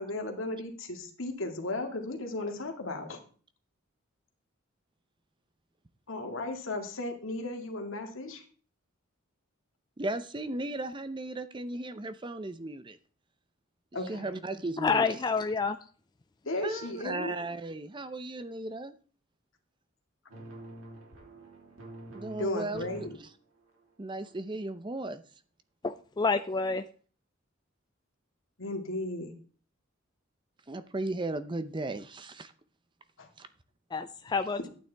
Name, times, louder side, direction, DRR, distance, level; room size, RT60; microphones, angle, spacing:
voice 1, 0.0-3.2 6.1-8.4 13.9-14.3 16.5-17.3 22.4-23.2 28.6-29.3 33.2-33.3, left 2 dB, 75° left, 4 dB, 2.1 m, -35 dB
voice 2, 10.0-13.0 14.1-15.2 16.6-18.9 22.1-22.9 24.0-25.2 30.7-32.5 33.4-33.5, right 2 dB, 25° right, 12 dB, 0.6 m, -36 dB
voice 3, 14.8-15.8 25.8-26.8 33.9-34.7, left 4 dB, 20° left, 9 dB, 0.4 m, -28 dB
sound 1, 20.3-23.1 23.6-23.9 24.2-24.4, right 1 dB, 90° right, 3.2 m, -47 dB
11.5 x 9.2 x 3.5 m, 0.41 s
head